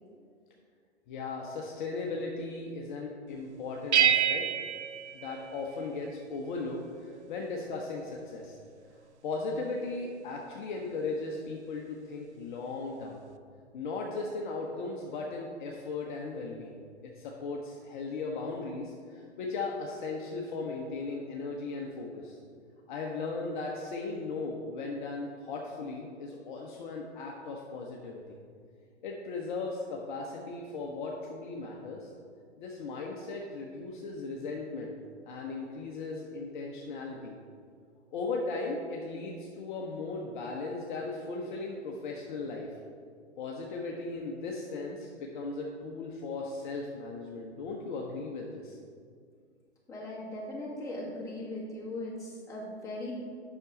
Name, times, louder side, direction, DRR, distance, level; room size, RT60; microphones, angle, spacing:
voice 1, 1.1-4.5 5.1-8.6 9.2-13.2 13.7-16.8 17.0-22.4 22.9-28.4 29.0-32.1 32.6-35.0 35.3-37.4 38.1-42.8 43.4-48.8, left 3 dB, 45° left, -1 dB, 0.9 m, -37 dB
sound 1, 3.9-6.1, right 9 dB, 75° right, 0.5 m, -28 dB
voice 2, 49.9-53.1, left 1 dB, 10° left, -7 dB, 1.9 m, -39 dB
7.8 x 6.0 x 4.0 m, 2.2 s
figure-of-eight pair, 115°, 34 cm